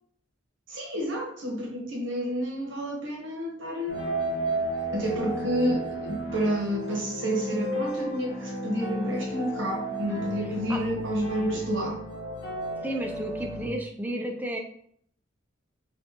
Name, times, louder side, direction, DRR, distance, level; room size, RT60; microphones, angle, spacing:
voice 1, 0.7-4.1 4.9-12.0, equal, 75° right, -1 dB, 1.0 m, -30 dB
sound 1, 3.9-13.7, right 1 dB, 60° left, 0.8 m, -33 dB
voice 2, 12.8-14.6, right 1 dB, 10° right, 3 dB, 0.3 m, -32 dB
4.3 x 2.4 x 2.8 m, 0.65 s
head